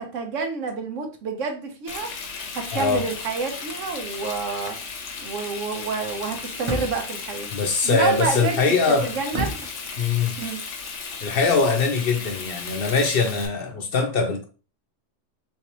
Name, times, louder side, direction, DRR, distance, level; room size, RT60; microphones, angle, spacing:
voice 1, 0.0-2.1 2.5-4.8 5.2-7.5 7.8-9.6 10.4-10.6, right 5 dB, 80° right, 1.1 m, -28 dB
Frying (food), 1.9-13.5, left 5 dB, 75° left, 1.0 m, -35 dB
voice 2, 2.7-3.0 7.5-9.1 10.0-10.3 11.2-14.4, left 4 dB, 55° left, 0.7 m, -22 dB
sound 1, 2.8-3.2 6.1-7.2 8.6-9.7, right 1 dB, 30° right, 0.8 m, -33 dB
3.3 x 3.3 x 2.9 m
omnidirectional pair, 1.3 m